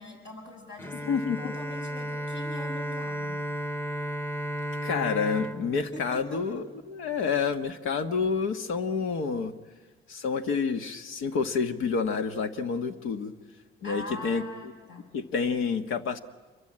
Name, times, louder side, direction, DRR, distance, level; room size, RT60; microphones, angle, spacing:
voice 1, 0.0-1.1 1.4-3.4 5.9-6.4 13.8-15.1, left 2 dB, 70° left, 2 dB, 7.0 m, -42 dB
Bowed string instrument, 0.8-6.8, equal, 10° left, 1.0 m, -34 dB
voice 2, 1.0-1.6 4.8-9.5 10.1-13.3 13.8-14.4 15.1-16.2, left 5 dB, 85° left, 8 dB, 1.5 m, -28 dB
27.5 x 24.0 x 8.8 m, 1.4 s
cardioid pair, 90°, 20 cm